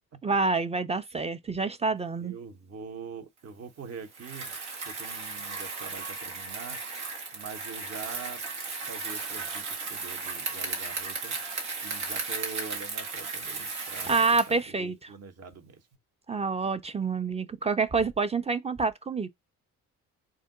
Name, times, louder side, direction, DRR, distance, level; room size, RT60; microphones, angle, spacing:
voice 1, 0.2-2.3 14.1-15.1 16.3-19.3, right 4 dB, 15° right, 0.4 m, -27 dB
voice 2, 2.2-4.5 4.9-6.8 7.3-8.5 8.8-11.4 11.8-15.8, right 5 dB, 40° right, 0.8 m, -44 dB
Bicycle, 4.1-14.6, right 4 dB, 85° right, 1.1 m, -35 dB
3.7 x 2.1 x 3.7 m
hypercardioid pair, 55°, 41 cm